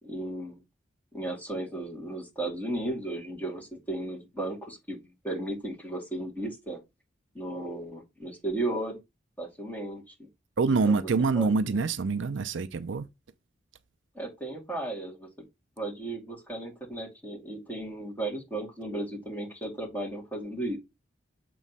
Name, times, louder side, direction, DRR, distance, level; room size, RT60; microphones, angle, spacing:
voice 1, 0.0-0.6 1.1-5.0 5.2-6.8 7.3-9.0 9.4-10.3 10.7-11.1 11.3-11.7 14.1-15.3 15.8-20.8, right 1 dB, 10° left, 2.4 m, -35 dB
voice 2, 10.6-13.1, right 4 dB, 75° right, 0.5 m, -25 dB
7.2 x 3.1 x 5.4 m
head